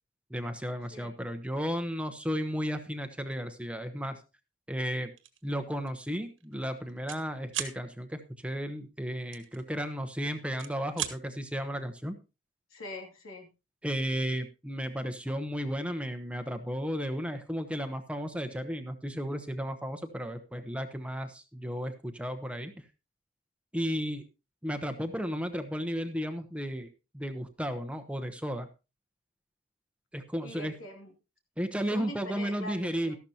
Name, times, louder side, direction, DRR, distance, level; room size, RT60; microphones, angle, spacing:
voice 1, 0.3-4.2 4.7-5.1 5.4-12.1 13.8-22.7 23.7-24.2 24.6-26.9 27.1-28.7 30.1-30.7 31.6-33.2, equal, 5° right, 8 dB, 0.9 m, -34 dB
sound 1, 5.2-5.4 5.9-6.0 6.3-7.2 7.5-7.8 9.3-10.1 10.5-11.2, right 10 dB, 65° right, 1.5 m, -36 dB
voice 2, 12.7-13.5 30.4-31.1 31.9-33.2, left 1 dB, 85° left, 3 dB, 2.7 m, -43 dB
13.5 x 12.0 x 2.9 m, 0.29 s
head